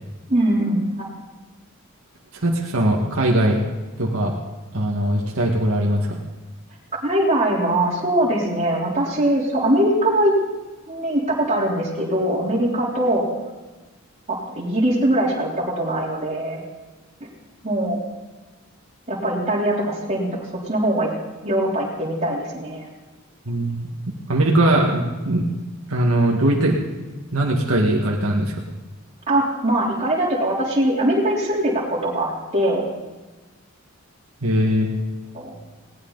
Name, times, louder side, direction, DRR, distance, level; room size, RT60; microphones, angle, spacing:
voice 1, 0.3-1.1 7.0-10.4 10.9-13.3 14.3-16.6 17.2-17.3 17.6-18.0 19.1-20.3 20.6-21.1 21.4-22.9 29.3-32.9 35.3-35.6, right 1 dB, 30° right, -4 dB, 3.5 m, -21 dB
voice 2, 2.4-3.6 4.0-4.4 4.7-6.2 23.5-23.9 24.3-25.5 25.9-26.8 27.3-28.5 34.4-34.9, right 1 dB, 75° right, -1 dB, 1.9 m, -20 dB
19.0 x 18.5 x 4.1 m, 1.2 s
head